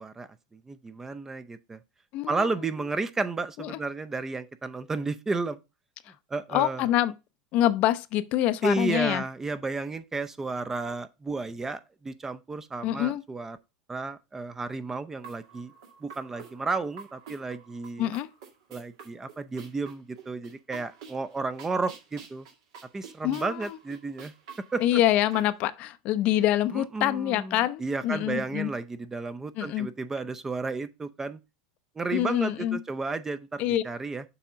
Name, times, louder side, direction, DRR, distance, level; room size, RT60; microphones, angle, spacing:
voice 1, 0.0-1.8 2.3-5.6 6.3-6.9 8.6-13.6 13.9-15.7 16.0-18.1 18.7-22.5 22.9-24.3 24.7-25.0 26.7-31.4 32.0-34.2, right 3 dB, 15° right, 0.5 m, -32 dB
voice 2, 2.1-2.5 3.6-3.8 6.5-7.1 7.5-9.2 12.8-13.2 18.0-18.3 23.2-23.8 24.8-28.7 29.6-29.9 32.1-32.8 33.6-33.8, left 13 dB, 55° left, 0.5 m, -26 dB
sound 1, 15.2-25.5, right 7 dB, 75° right, 1.9 m, -48 dB
6.9 x 3.6 x 5.0 m
supercardioid pair, 110°, 3 cm